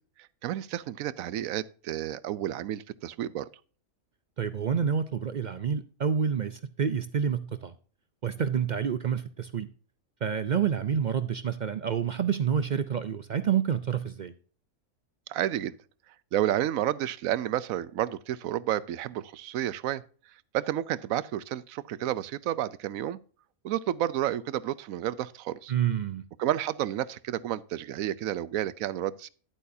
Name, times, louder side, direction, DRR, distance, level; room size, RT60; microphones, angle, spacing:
voice 1, 0.4-3.5 15.3-15.7 16.3-20.0 20.5-23.2 23.6-25.7 26.4-29.3, right 12 dB, 90° right, 1.0 m, -30 dB
voice 2, 4.4-7.7 8.2-9.7 10.2-14.3 25.7-26.2, right 7 dB, 60° right, 0.4 m, -28 dB
11.0 x 8.3 x 2.7 m
omnidirectional pair, 1.4 m